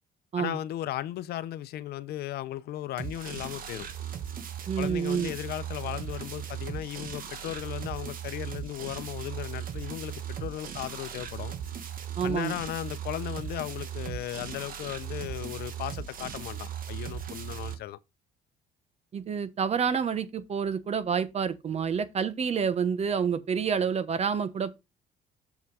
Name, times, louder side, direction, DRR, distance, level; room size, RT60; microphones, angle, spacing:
voice 1, 0.4-3.9 4.8-11.5 12.2-18.0, left 13 dB, 70° left, 0.7 m, -36 dB
sound 1, 3.0-17.7, right 9 dB, 55° right, 1.6 m, -38 dB
voice 2, 4.7-5.3 12.2-12.5 19.1-24.8, right 6 dB, 40° right, 1.0 m, -28 dB
7.1 x 5.9 x 4.8 m
cardioid pair, 110°, 17 cm